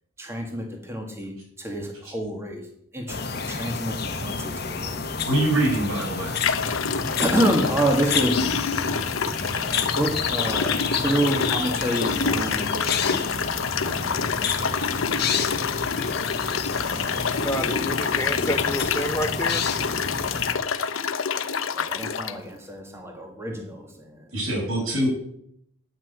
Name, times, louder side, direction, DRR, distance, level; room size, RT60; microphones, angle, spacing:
voice 1, 0.2-2.7 2.9-5.2 7.2-8.4 8.8-9.0 9.5-13.3 13.8-15.4 18.3-18.5 21.7-24.2, right 1 dB, 15° right, 2 dB, 1.9 m, -29 dB
sound 1, 3.1-20.5, left 5 dB, 50° left, 1.3 m, -30 dB
voice 2, 5.2-6.3 24.3-25.1, right 1 dB, 90° right, -2 dB, 7.3 m, -24 dB
sound 2, 5.6-5.8 6.4-22.3, left 6 dB, 75° left, 0.8 m, -27 dB
voice 3, 17.4-19.6, left 1 dB, 15° left, 4 dB, 0.8 m, -29 dB
10.0 x 9.3 x 8.2 m, 0.72 s
head